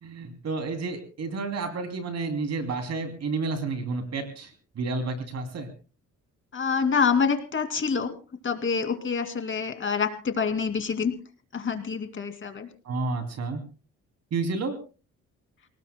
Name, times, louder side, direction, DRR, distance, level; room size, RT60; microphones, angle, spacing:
voice 1, 0.0-4.5 4.8-5.7 12.8-13.6 14.3-14.8, right 3 dB, 60° right, 6 dB, 2.9 m, -30 dB
voice 2, 6.5-8.1 8.4-11.1 11.5-12.7, left 5 dB, 40° left, 7 dB, 2.5 m, -26 dB
28.5 x 18.5 x 2.2 m, 0.36 s
cardioid pair, 90°, 30 cm